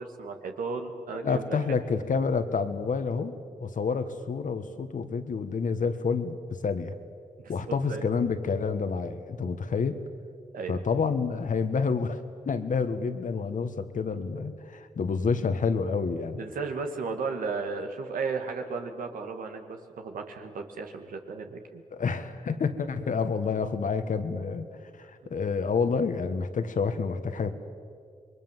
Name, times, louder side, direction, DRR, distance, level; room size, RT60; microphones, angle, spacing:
voice 1, 0.0-1.6 7.7-8.1 10.5-10.8 16.4-21.8, right 4 dB, 90° right, 4 dB, 2.2 m, -34 dB
voice 2, 1.2-7.0 7.5-10.0 10.7-12.2 12.5-16.4 21.9-24.7 25.0-27.5, left 5 dB, 70° left, 9 dB, 1.7 m, -28 dB
27.0 x 21.5 x 7.6 m, 2.2 s
cardioid pair, 45°, 14 cm